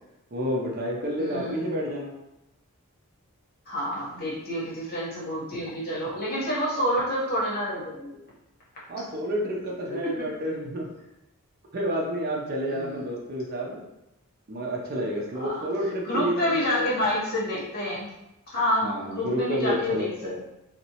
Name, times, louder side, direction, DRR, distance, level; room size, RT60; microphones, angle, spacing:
voice 1, 0.3-2.1 8.9-10.9 11.7-13.9 14.5-16.9 18.8-20.4, equal, 45° right, -2 dB, 0.5 m, -30 dB
voice 2, 1.2-1.7 3.7-8.1 12.7-13.0 15.3-15.7 16.0-18.1 18.5-20.4, left 1 dB, 45° left, -7 dB, 0.9 m, -28 dB
2.7 x 2.0 x 2.8 m, 0.91 s
head